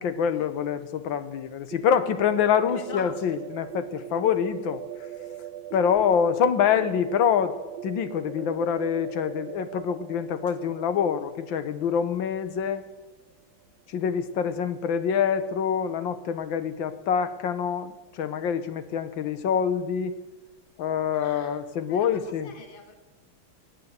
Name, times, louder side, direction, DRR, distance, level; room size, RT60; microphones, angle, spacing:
voice 1, 0.0-4.8 5.7-7.6 7.8-12.8 13.9-20.1 20.8-22.5, left 7 dB, 70° left, 12 dB, 1.7 m, -26 dB
sound 1, 1.7-13.4, right 11 dB, 75° right, 1.4 m, -41 dB
voice 2, 2.7-3.4 21.1-21.6 21.9-22.9, left 5 dB, 25° left, 5 dB, 1.8 m, -44 dB
18.0 x 10.0 x 8.1 m, 1.1 s
omnidirectional pair, 2.3 m